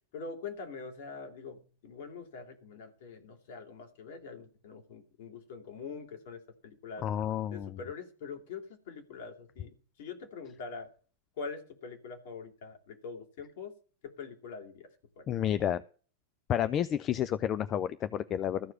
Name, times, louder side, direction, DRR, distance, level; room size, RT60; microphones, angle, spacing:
voice 1, 0.1-7.0 7.5-10.9 11.4-13.8 14.0-14.9 15.2-15.3, left 5 dB, 55° left, 4 dB, 2.9 m, -44 dB
voice 2, 7.0-7.8 15.3-15.8 16.5-18.7, left 10 dB, 30° left, 13 dB, 0.5 m, -30 dB
14.0 x 4.8 x 8.8 m, 0.40 s
figure-of-eight pair, 90°, 0 cm